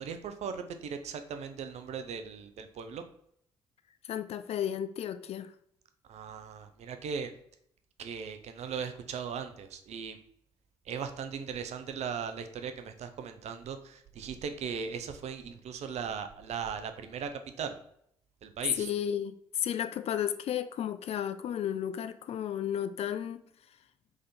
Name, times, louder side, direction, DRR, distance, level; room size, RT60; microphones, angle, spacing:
voice 1, 0.0-3.0 6.1-7.3 8.0-10.2 10.9-17.3 17.6-17.8 18.4-18.9, right 6 dB, 50° right, 8 dB, 0.6 m, -38 dB
voice 2, 4.1-5.5 18.7-23.4, left 10 dB, 45° left, 11 dB, 0.4 m, -33 dB
3.7 x 3.5 x 4.1 m, 0.69 s
figure-of-eight pair, 45°, 14 cm